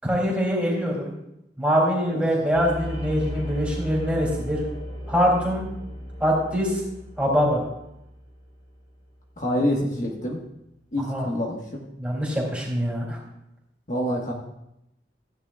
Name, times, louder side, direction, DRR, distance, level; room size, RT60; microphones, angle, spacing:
voice 1, 0.0-1.1 1.6-4.6 5.1-5.7 6.2-6.8 7.2-7.6 11.1-11.3 12.0-13.2, equal, 10° right, -4 dB, 2.9 m, -23 dB
sound 1, 2.5-9.3, equal, 65° left, 2.7 m, -36 dB
voice 2, 9.4-10.4 10.9-11.8 13.9-14.3, equal, 45° left, -1 dB, 1.4 m, -26 dB
15.0 x 9.9 x 2.4 m, 0.83 s
head